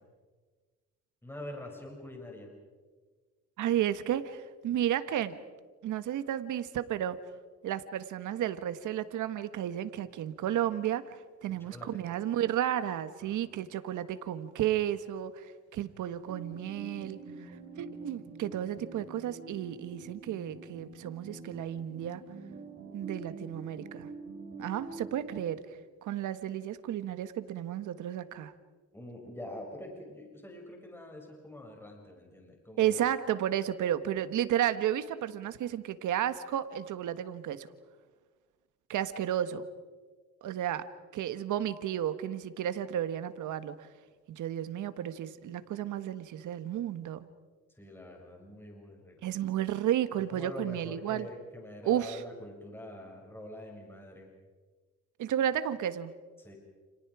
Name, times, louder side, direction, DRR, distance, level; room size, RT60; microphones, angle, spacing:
voice 1, 1.2-2.5 11.5-12.0 13.2-13.4 28.9-33.0 47.8-49.2 50.3-54.3 56.4-56.6, left 1 dB, 10° left, 0 dB, 6.9 m, -45 dB
voice 2, 3.6-5.4 5.8-7.2 7.6-17.5 17.8-22.2 22.9-24.1 24.6-25.6 26.0-28.5 32.8-37.7 38.9-39.7 40.4-40.9 41.1-43.7 44.3-47.2 49.2-51.3 51.8-52.2 55.2-56.1, right 11 dB, 80° right, 12 dB, 1.6 m, -32 dB
sound 1, 16.2-25.4, right 3 dB, 50° right, 7.8 m, -46 dB
30.0 x 30.0 x 5.0 m, 1.4 s
cardioid pair, 90°, 30 cm